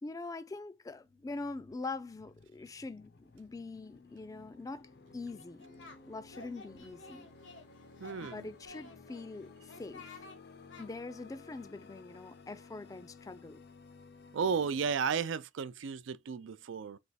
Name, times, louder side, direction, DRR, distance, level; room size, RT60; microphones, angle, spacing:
voice 1, 0.0-5.6 6.1-7.3 8.3-10.3 10.8-13.6, left 3 dB, 20° left, 0.3 m, -43 dB
sound 1, 0.9-14.9, left 4 dB, 60° left, 0.6 m, -56 dB
Singing, 5.3-6.0 6.3-7.7 8.0-9.3 9.7-10.4 10.7-10.9, left 3 dB, 75° left, 1.2 m, -52 dB
voice 2, 8.0-8.5 14.3-17.0, right 6 dB, 85° right, 0.4 m, -34 dB
3.4 x 3.0 x 4.0 m
head